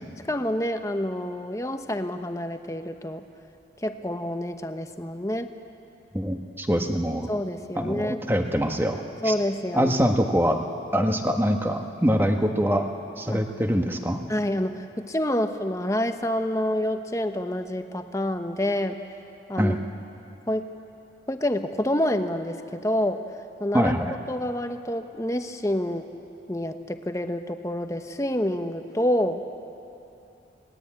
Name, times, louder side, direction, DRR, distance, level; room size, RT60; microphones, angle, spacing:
voice 1, 0.3-3.2 3.8-5.5 7.3-8.2 9.2-10.0 13.3-13.4 14.3-19.0 19.5-19.8 20.5-20.6 21.3-23.2 23.6-23.9 24.3-26.1 26.5-29.6, left 1 dB, 15° left, 7 dB, 1.0 m, -27 dB
voice 2, 6.1-7.3 7.8-9.3 9.7-10.6 10.9-12.9 13.2-14.2 19.6-19.8 23.7-24.2, equal, 10° right, 4 dB, 1.3 m, -24 dB
28.5 x 20.0 x 8.8 m, 2.8 s
head